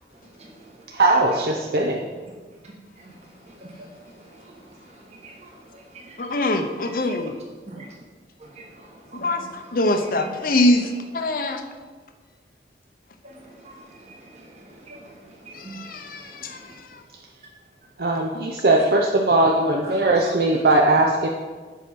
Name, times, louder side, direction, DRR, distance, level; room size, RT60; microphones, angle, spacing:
voice 1, 0.4-0.8 3.0-3.2 3.5-3.9 4.3-6.1 7.7-7.9 8.4-9.5 10.2-10.4 13.2-16.8 20.1-20.3, right 2 dB, 35° right, -2 dB, 1.5 m, -44 dB
voice 2, 0.9-2.1 18.0-21.3, right 2 dB, 60° right, 0 dB, 0.7 m, -19 dB
voice 3, 6.2-7.3 9.1-11.6 15.5-17.0, left 1 dB, 50° left, 7 dB, 0.7 m, -24 dB
8.0 x 4.9 x 6.2 m, 1.4 s
head